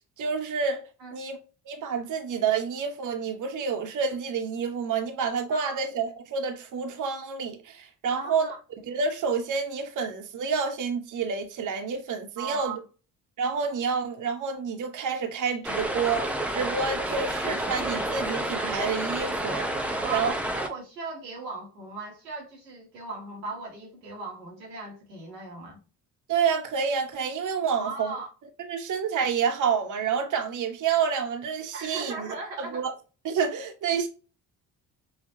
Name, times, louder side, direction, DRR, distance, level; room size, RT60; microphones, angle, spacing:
voice 1, 0.2-0.8 1.1-1.4 1.7-8.5 8.9-12.8 13.4-20.3 26.3-28.1 28.7-32.9 33.2-34.1, right 6 dB, 40° right, 0.9 m, -29 dB
voice 2, 8.1-8.6 12.4-12.8 20.0-25.8 27.8-28.3 31.7-32.8, right 3 dB, 85° right, 1.1 m, -38 dB
sound 1, 15.6-20.7, right 1 dB, 5° right, 0.6 m, -29 dB
5.7 x 2.2 x 2.7 m
figure-of-eight pair, 45°, 49 cm